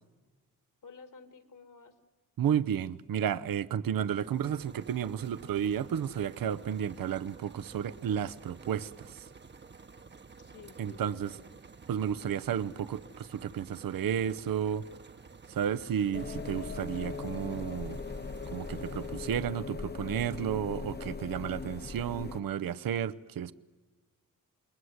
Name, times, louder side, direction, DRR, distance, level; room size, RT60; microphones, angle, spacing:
voice 1, 0.8-2.0 10.4-11.6, left 5 dB, 65° left, 2.4 m, -52 dB
voice 2, 2.4-9.2 10.8-11.3 11.9-14.8 15.5-18.0 18.5-23.5, right 9 dB, 80° right, 0.8 m, -32 dB
sound 1, 3.9-19.7, right 4 dB, 30° right, 0.9 m, -52 dB
sound 2, 16.1-22.4, left 4 dB, 30° left, 0.9 m, -39 dB
28.5 x 21.5 x 8.0 m
cardioid pair, 90°, 34 cm